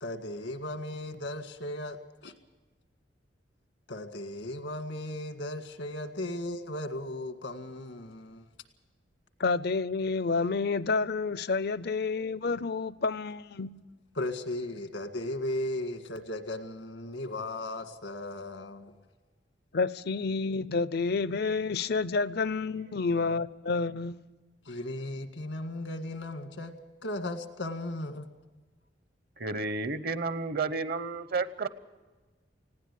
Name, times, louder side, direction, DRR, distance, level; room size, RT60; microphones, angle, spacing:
voice 1, 0.0-2.0 2.2-2.3 3.9-8.5 14.2-18.9 24.7-26.7 27.0-28.3, left 1 dB, 80° left, 1.9 m, -36 dB
voice 2, 9.4-13.7 19.7-24.2, left 4 dB, 60° left, 0.6 m, -29 dB
voice 3, 29.4-31.7, right 3 dB, 55° right, 0.9 m, -31 dB
19.5 x 16.5 x 8.4 m
head